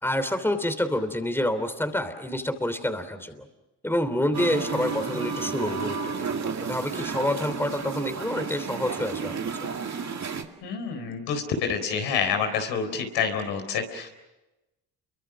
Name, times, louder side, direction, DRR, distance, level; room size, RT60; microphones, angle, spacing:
voice 1, 0.0-3.5 3.8-6.3 6.6-9.3, left 1 dB, 5° left, 9 dB, 3.2 m, -27 dB
Musical instrument, 4.3-10.4, right 5 dB, 40° right, 2.3 m, -32 dB
voice 2, 10.6-14.1, left 6 dB, 80° left, 5 dB, 4.3 m, -28 dB
29.0 x 23.5 x 6.2 m, 1.0 s
supercardioid pair, 65°, 41 cm